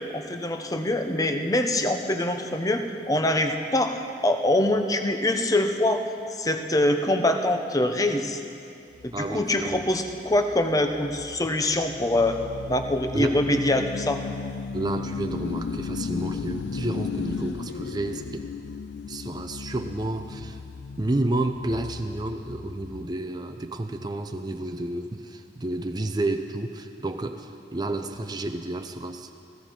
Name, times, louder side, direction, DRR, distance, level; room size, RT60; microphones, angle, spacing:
voice 1, 0.1-6.0 6.4-8.4 9.0-12.4 12.7-14.2, left 1 dB, 20° left, 6 dB, 0.8 m, -24 dB
sound 1, 9.0-23.1, left 5 dB, 65° left, 0.4 m, -35 dB
voice 2, 9.1-9.9 13.1-13.4 14.7-18.5 19.1-20.6 21.0-29.3, right 2 dB, 25° right, 6 dB, 0.5 m, -30 dB
16.5 x 15.5 x 4.5 m, 2.6 s
head